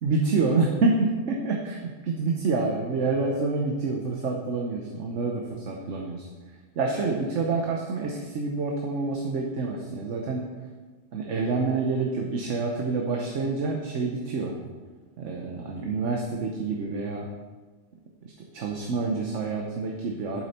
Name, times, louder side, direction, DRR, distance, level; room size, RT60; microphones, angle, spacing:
voice 1, 0.0-6.3 6.8-10.5 11.1-14.6 15.2-17.3 18.5-20.4, right 3 dB, 80° right, 0 dB, 1.3 m, -27 dB
8.9 x 7.7 x 4.3 m, 1.3 s
omnidirectional pair, 1.2 m